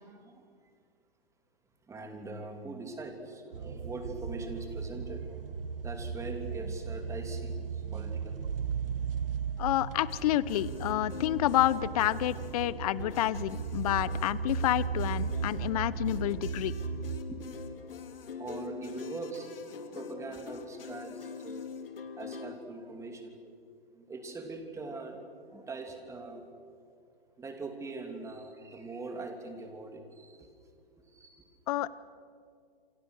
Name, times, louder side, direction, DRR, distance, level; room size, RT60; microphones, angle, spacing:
voice 1, 0.1-0.4 1.9-5.4 5.8-8.5 15.3-15.4 15.8-16.0 17.3-17.4 18.4-21.7 22.2-23.5 23.9-26.4 27.4-30.5 31.1-31.5 31.7-31.9, right 3 dB, 10° right, 5 dB, 3.0 m, -42 dB
sound 1, 3.5-17.2, right 6 dB, 70° right, 1.5 m, -36 dB
voice 2, 9.6-16.7 31.7-31.9, left 14 dB, 40° left, 18 dB, 0.9 m, -29 dB
sound 2, 10.1-22.6, left 6 dB, 70° left, 2.7 m, -44 dB
28.5 x 26.0 x 6.5 m, 2.3 s
hypercardioid pair, 130°, 29 cm